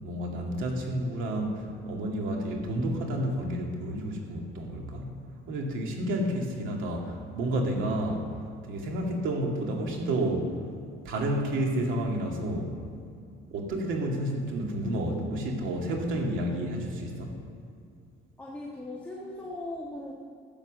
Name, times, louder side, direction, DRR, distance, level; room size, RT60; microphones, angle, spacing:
voice 1, 0.0-5.2 5.5-8.2 8.7-10.5 11.0-12.8 13.5-17.3, right 1 dB, 70° right, 0 dB, 2.4 m, -30 dB
voice 2, 18.4-20.1, left 2 dB, 5° left, -4 dB, 1.4 m, -38 dB
15.0 x 8.4 x 6.6 m, 2.4 s
cardioid pair, 160°, 21 cm